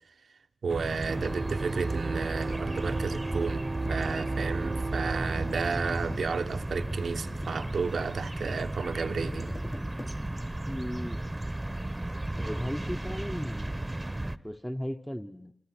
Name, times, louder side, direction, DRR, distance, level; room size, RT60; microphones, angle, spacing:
voice 1, 0.6-9.5, right 5 dB, 85° right, 1.1 m, -32 dB
sound 1, 0.7-14.4, right 1 dB, 20° right, 1.1 m, -35 dB
sound 2, 1.1-6.2, right 3 dB, 45° right, 0.9 m, -34 dB
sound 3, 3.8-10.6, left 2 dB, 35° left, 1.3 m, -47 dB
voice 2, 10.7-11.2 12.4-13.9 14.4-15.5, equal, 5° left, 1.1 m, -36 dB
28.0 x 25.5 x 6.1 m
cardioid pair, 50°, 0 cm